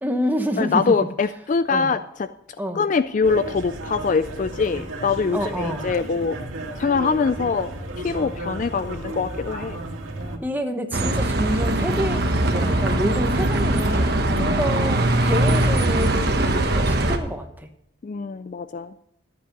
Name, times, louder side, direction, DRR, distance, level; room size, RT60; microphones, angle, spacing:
voice 1, 0.0-0.8 1.7-1.9 2.6-2.8 5.3-5.9 10.4-17.7, equal, 10° right, 5 dB, 1.1 m, -28 dB
voice 2, 0.6-2.3 2.8-6.4 6.8-7.7 8.0-9.8 14.3-14.6 18.0-18.9, left 5 dB, 40° left, 13 dB, 0.3 m, -23 dB
sound 1, 3.2-10.4, right 1 dB, 85° right, 2.1 m, -33 dB
Bus, 10.9-17.2, right 1 dB, 50° right, 1.3 m, -21 dB
13.0 x 8.4 x 5.3 m, 0.81 s
head